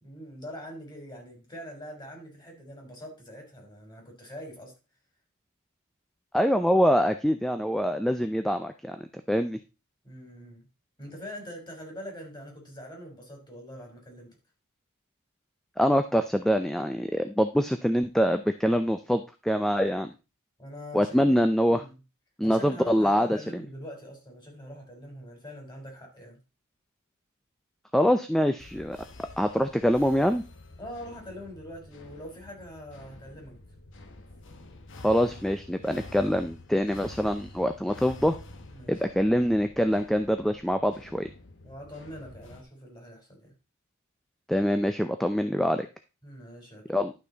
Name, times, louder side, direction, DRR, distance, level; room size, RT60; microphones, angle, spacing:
voice 1, 0.0-4.7 10.0-10.7 11.0-14.4 20.6-21.4 21.7-22.0 22.4-26.4 30.8-33.6 38.7-38.9 41.6-43.5 46.2-47.0, equal, 20° left, 1 dB, 3.9 m, -43 dB
voice 2, 6.3-9.0 9.3-9.6 15.8-20.1 20.9-21.8 22.4-23.4 27.9-29.0 29.4-30.4 35.0-38.4 38.9-41.3 44.5-45.9 46.9-47.1, equal, ahead, 8 dB, 0.5 m, -24 dB
sound 1, 28.6-42.6, left 2 dB, 60° left, 1.2 m, -48 dB
11.5 x 6.0 x 4.0 m, 0.29 s
head